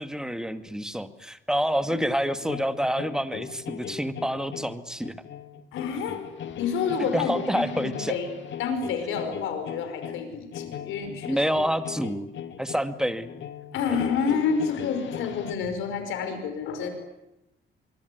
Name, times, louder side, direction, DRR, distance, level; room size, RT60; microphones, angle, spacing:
voice 1, 0.0-5.1 7.1-8.2 11.1-12.3 12.6-13.4 13.9-14.0, equal, 5° right, 8 dB, 2.3 m, -28 dB
sound 1, 2.4-15.5, left 9 dB, 70° left, 2.2 m, -39 dB
voice 2, 5.7-6.2 6.6-8.3 8.6-11.4 13.7-16.9, left 6 dB, 90° left, 7 dB, 5.6 m, -29 dB
25.5 x 23.0 x 9.6 m, 0.90 s
cardioid pair, 90°, 20 cm